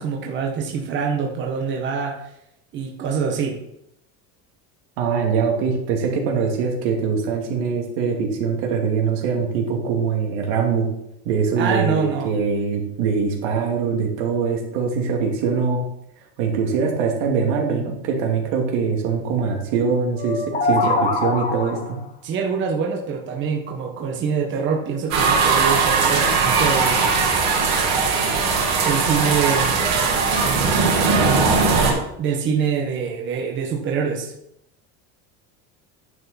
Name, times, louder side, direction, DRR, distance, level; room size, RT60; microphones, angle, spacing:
voice 1, 0.0-2.2 2.7-3.6 11.6-12.3 20.8-20.9 22.2-27.1 28.8-29.9 32.2-34.3, right 6 dB, 35° right, 0 dB, 1.3 m, -25 dB
voice 2, 5.0-10.9 11.2-15.8 16.4-22.0, right 5 dB, 80° right, 1 dB, 2.6 m, -23 dB
sound 1, 20.2-22.0, left 3 dB, 20° left, 1.2 m, -23 dB
sound 2, 25.1-31.9, right 4 dB, 50° right, 3.3 m, -19 dB
10.5 x 6.6 x 4.2 m, 0.78 s
cardioid pair, 155°, 33 cm